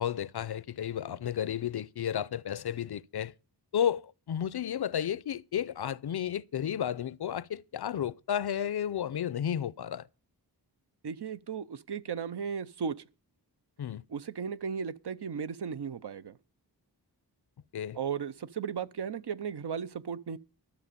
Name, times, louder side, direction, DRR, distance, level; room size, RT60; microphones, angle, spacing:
voice 1, 0.0-3.3 3.7-10.1 13.8-14.0 17.7-18.0, left 9 dB, 70° left, 0.5 m, -32 dB
voice 2, 11.0-13.0 14.1-16.4 17.9-20.4, right 6 dB, 75° right, 0.8 m, -35 dB
13.0 x 7.6 x 6.7 m
wide cardioid pair, 75°, 41 cm